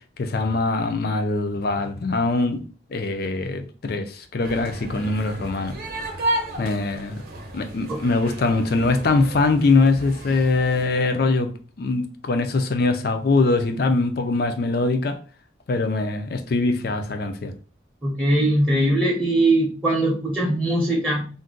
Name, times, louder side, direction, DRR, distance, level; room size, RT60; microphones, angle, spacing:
voice 1, 0.2-2.6 2.9-5.8 6.6-7.2 7.5-15.2 15.7-17.5, left 3 dB, 55° left, 0.4 m, -22 dB
sound 1, 4.4-10.9, right 1 dB, 50° right, 0.7 m, -33 dB
voice 2, 18.0-21.3, right 1 dB, 5° right, 0.7 m, -21 dB
2.5 x 2.2 x 3.7 m
head